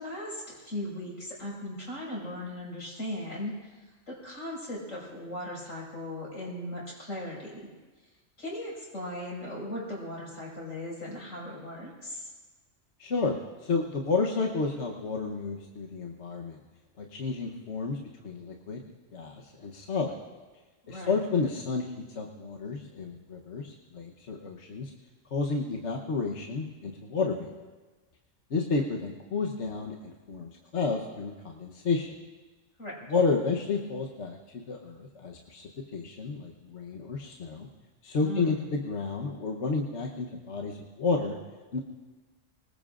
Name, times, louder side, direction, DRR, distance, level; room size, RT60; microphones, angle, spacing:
voice 1, 0.0-7.7 8.4-12.3 20.9-21.2 32.8-33.0 38.2-38.6, left 1 dB, 80° left, -4 dB, 6.0 m, -38 dB
voice 2, 13.0-16.6 17.0-18.0 18.2-18.8 19.1-20.2 20.9-24.9 25.3-27.5 28.5-32.1 33.1-35.6 35.9-37.7 38.0-41.4 41.7-41.8, left 4 dB, 60° left, 0 dB, 1.3 m, -31 dB
24.5 x 20.0 x 2.5 m, 1.3 s
omnidirectional pair, 1.3 m